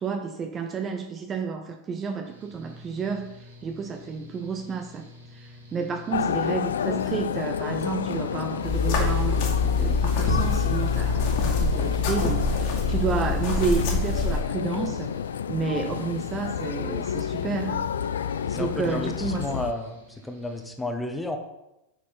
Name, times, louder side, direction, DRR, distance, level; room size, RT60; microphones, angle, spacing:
voice 1, 0.0-5.1 5.3-15.1 15.5-17.9 18.5-19.5, right 5 dB, 25° right, 5 dB, 0.8 m, -31 dB
Mechanical fan, 2.2-20.7, left 2 dB, 70° right, 2.1 m, -48 dB
sound 1, 6.1-19.7, left 8 dB, 65° left, 0.3 m, -30 dB
sound 2, 8.6-14.4, left 4 dB, 45° left, 2.4 m, -25 dB
voice 2, 18.4-21.4, left 2 dB, 5° left, 5 dB, 1.3 m, -32 dB
9.2 x 6.5 x 4.3 m, 0.92 s
figure-of-eight pair, 90°, 0 cm